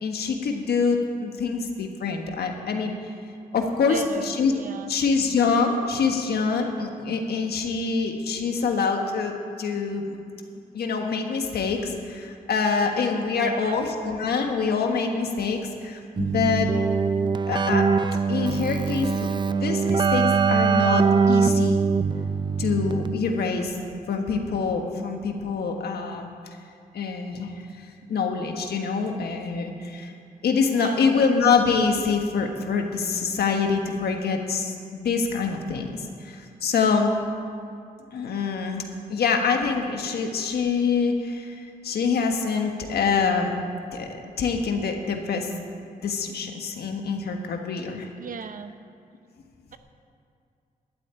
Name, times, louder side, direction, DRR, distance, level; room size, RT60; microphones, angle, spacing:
voice 1, 0.0-2.9 3.5-4.5 4.9-9.3 9.6-10.2 10.7-16.7 17.5-17.9 18.3-21.8 22.6-23.8 24.1-26.3 26.9-27.6 28.1-30.1 30.4-37.1 38.1-43.5 43.9-44.1 44.4-45.5 46.0-48.1, left 5 dB, 90° left, 3 dB, 1.5 m, -25 dB
voice 2, 3.8-4.9 13.4-13.8 30.7-31.1 48.2-48.7 49.7-49.8, right 6 dB, 60° right, 8 dB, 0.8 m, -36 dB
Keyboard (musical), 16.2-23.5, right 5 dB, 30° right, 0.3 m, -22 dB
12.0 x 8.3 x 9.0 m, 2.4 s
wide cardioid pair, 165°, 16 cm